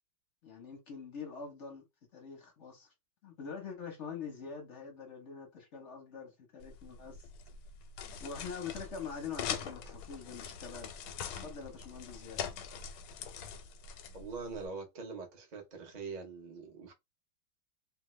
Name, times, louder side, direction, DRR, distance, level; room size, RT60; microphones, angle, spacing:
voice 1, 0.4-1.9 2.1-2.9 3.2-7.3 8.2-10.9 11.4-12.4, left 6 dB, 55° left, 0.8 m, -44 dB
sound 1, 6.6-14.7, left 7 dB, 85° left, 1.4 m, -43 dB
voice 2, 14.1-16.9, right 4 dB, 55° right, 0.4 m, -43 dB
3.3 x 2.0 x 3.1 m
omnidirectional pair, 2.2 m